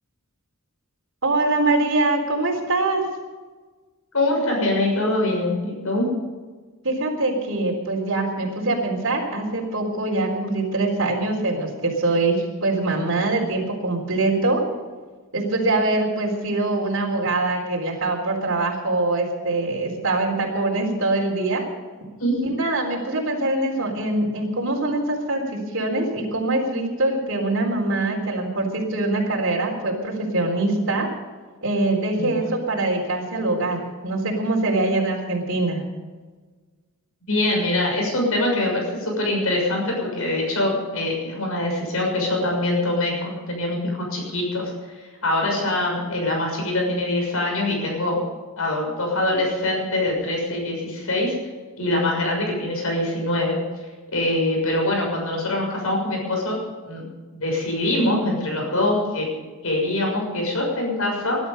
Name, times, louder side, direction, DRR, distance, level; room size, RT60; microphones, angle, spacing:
voice 1, 1.2-3.0 6.8-14.6 15.3-21.6 22.4-31.1 31.6-35.8, right 2 dB, 60° right, -3 dB, 3.9 m, -23 dB
voice 2, 4.1-6.1 22.2-22.4 32.2-32.3 37.3-48.2 48.6-51.3 51.8-53.6 54.1-56.6 56.9-57.1 57.3-59.3 59.6-61.4, left 1 dB, 75° left, 0 dB, 6.7 m, -24 dB
21.5 x 11.5 x 5.4 m, 1.4 s
head